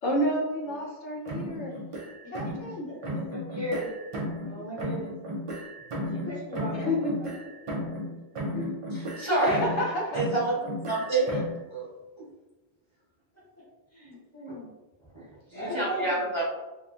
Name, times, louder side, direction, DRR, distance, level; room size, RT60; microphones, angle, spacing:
voice 1, 0.0-1.8 2.3-2.9 6.7-7.7 8.5-8.8 9.4-10.2 11.2-11.4, equal, 85° left, -1 dB, 1.0 m, -30 dB
sound 1, 1.2-2.7 3.0-4.5 4.8-8.1 8.3-9.9 10.1-11.6, equal, 50° right, 0.4 m, -34 dB
voice 2, 2.8-3.9 4.4-5.1 6.1-6.9 13.9-14.7 15.5-16.4, left 1 dB, 15° left, -7 dB, 0.7 m, -37 dB
voice 3, 8.9-9.6 10.1-10.5 10.8-11.3 11.7-11.9 15.5-16.4, right 2 dB, 30° right, -7 dB, 0.8 m, -27 dB
2.8 x 2.5 x 2.3 m, 1.1 s
omnidirectional pair, 1.1 m